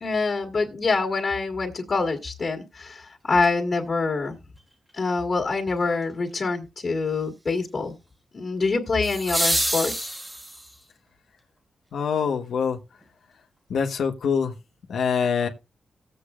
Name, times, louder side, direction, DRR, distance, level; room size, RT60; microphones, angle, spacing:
voice 1, 0.0-4.4 5.0-7.9 8.3-9.9, left 4 dB, 40° left, 1.8 m, -25 dB
sound 1, 3.4-3.5 9.0-10.8 13.0-13.1, right 1 dB, 10° right, 1.1 m, -27 dB
voice 2, 11.9-12.8 13.7-14.5 14.9-15.5, left 6 dB, 85° left, 1.3 m, -24 dB
19.5 x 7.8 x 2.5 m
wide cardioid pair, 125°, 0 cm